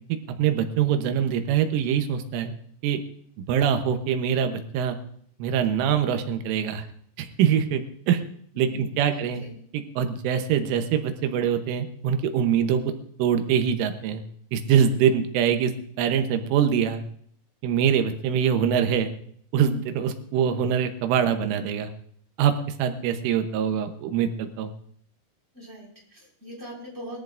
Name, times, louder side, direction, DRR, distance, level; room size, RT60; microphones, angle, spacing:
voice 1, 0.4-2.5 2.8-3.0 3.5-5.0 5.4-6.8 7.2-8.2 8.6-9.4 9.7-12.8 13.2-14.2 14.5-15.7 16.0-17.0 17.6-19.1 19.5-21.9 22.4-22.5 22.8-24.7, right 8 dB, 80° right, 7 dB, 3.5 m, -23 dB
voice 2, 8.5-9.6 25.5-27.2, equal, 15° right, -4 dB, 5.3 m, -42 dB
22.0 x 14.0 x 2.5 m, 0.62 s
omnidirectional pair, 5.6 m